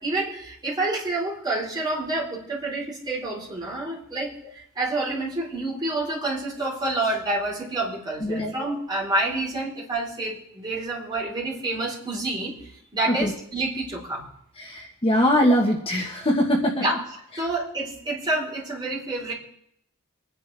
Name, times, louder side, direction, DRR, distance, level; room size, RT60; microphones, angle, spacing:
voice 1, 0.0-12.5 12.9-14.2 16.8-19.3, right 2 dB, 20° right, -5 dB, 4.2 m, -28 dB
voice 2, 8.2-8.5 13.1-13.3 14.6-16.8, equal, 25° left, -1 dB, 1.5 m, -22 dB
25.0 x 10.5 x 3.5 m, 0.71 s
head